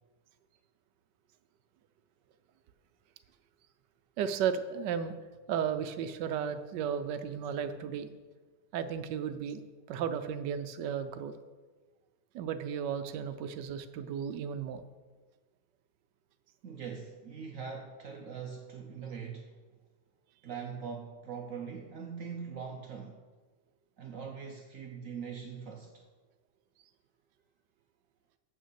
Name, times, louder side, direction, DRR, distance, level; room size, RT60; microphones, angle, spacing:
voice 1, 4.2-5.2 5.5-8.1 8.7-9.6 9.9-11.3 12.3-14.8, right 8 dB, 85° right, 10 dB, 1.3 m, -34 dB
voice 2, 16.6-19.5 20.4-23.2 24.0-26.0, right 6 dB, 60° right, 2 dB, 1.0 m, -42 dB
6.8 x 6.3 x 6.8 m, 1.4 s
omnidirectional pair, 1.8 m